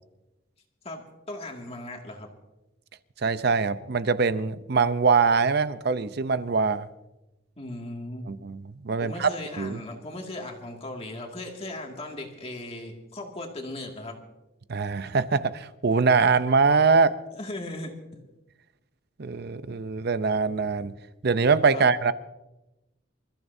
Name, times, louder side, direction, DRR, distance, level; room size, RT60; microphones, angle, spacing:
voice 1, 0.8-2.3 7.6-8.3 9.0-14.2 17.3-18.2 21.7-21.9, left 1 dB, 30° left, 2.1 m, -37 dB
voice 2, 3.2-6.9 8.3-9.3 9.6-9.8 14.7-17.2 19.2-20.9 21.2-22.1, right 4 dB, 55° right, 0.6 m, -23 dB
27.0 x 14.0 x 2.7 m
head